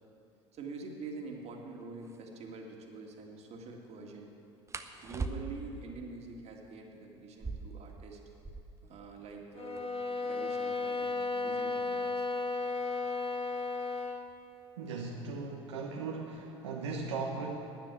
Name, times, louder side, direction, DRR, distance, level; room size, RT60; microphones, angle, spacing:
voice 1, 0.5-4.3 5.0-8.2 8.8-10.0 10.2-12.3, right 3 dB, 45° right, 1 dB, 2.2 m, -46 dB
sound 1, 1.5-1.6 2.0-2.2 4.7-5.8 7.2-8.9 9.2-9.3 9.5-10.1 10.7-13.3 14.3-14.6 15.0-15.5 15.8-16.5, right 4 dB, 20° right, 0.9 m, -42 dB
sound 2, 9.5-14.3, left 3 dB, 40° left, 1.3 m, -34 dB
voice 2, 14.8-17.6, right 4 dB, 75° right, -1 dB, 1.0 m, -38 dB
10.0 x 9.6 x 8.5 m, 2.6 s
hypercardioid pair, 70°, 15 cm